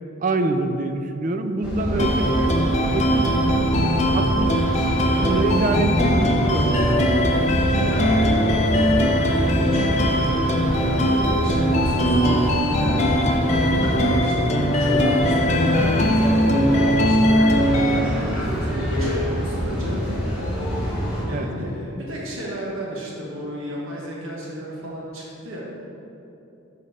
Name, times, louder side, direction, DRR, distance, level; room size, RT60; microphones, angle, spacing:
voice 1, 0.2-2.6 2.9-3.4 4.1-4.7 5.2-7.1 21.3-21.5, right 2 dB, 40° right, 7 dB, 0.4 m, -25 dB
sound 1, 1.6-21.2, equal, 5° right, 1.3 m, -26 dB
sound 2, 2.0-18.0, equal, 30° left, 0.5 m, -21 dB
voice 2, 7.8-20.0 21.2-25.6, equal, 75° right, -4 dB, 1.2 m, -33 dB
sound 3, 9.6-15.6, right 1 dB, 55° right, 0.9 m, -40 dB
7.1 x 4.1 x 5.0 m, 2.8 s
head